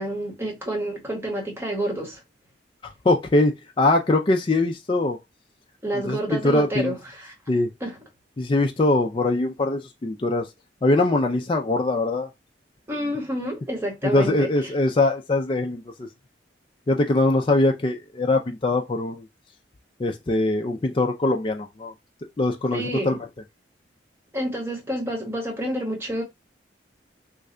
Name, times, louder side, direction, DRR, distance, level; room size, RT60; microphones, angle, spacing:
voice 1, 0.0-2.2 5.8-7.3 7.8-8.0 12.9-14.7 22.7-23.2 24.3-26.2, right 1 dB, 15° right, 1.1 m, -29 dB
voice 2, 3.0-5.2 5.9-6.9 7.5-7.7 8.4-10.5 10.8-12.3 14.0-16.1 16.9-19.2 20.0-21.9 22.4-23.2, left 2 dB, 30° left, 0.4 m, -22 dB
3.2 x 2.3 x 3.7 m
head